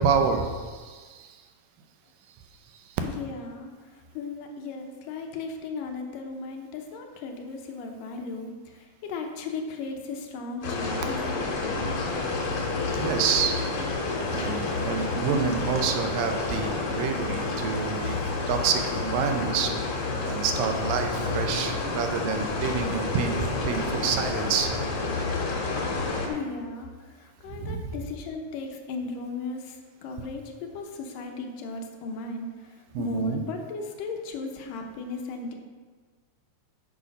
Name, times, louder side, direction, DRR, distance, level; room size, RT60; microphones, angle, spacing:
voice 1, 0.0-1.4 2.7-2.8 13.0-13.5 14.3-19.7 20.2-23.4 23.6-24.7 27.5-27.9 32.9-33.4, right 6 dB, 80° right, 5 dB, 2.4 m, -28 dB
voice 2, 3.0-3.7 4.1-11.9 26.3-29.8 30.0-32.7 33.0-35.5, left 3 dB, 75° left, 3 dB, 2.4 m, -36 dB
sound 1, 10.6-26.3, left 3 dB, 55° left, 2.2 m, -29 dB
8.3 x 6.7 x 5.3 m, 1.5 s
omnidirectional pair, 4.1 m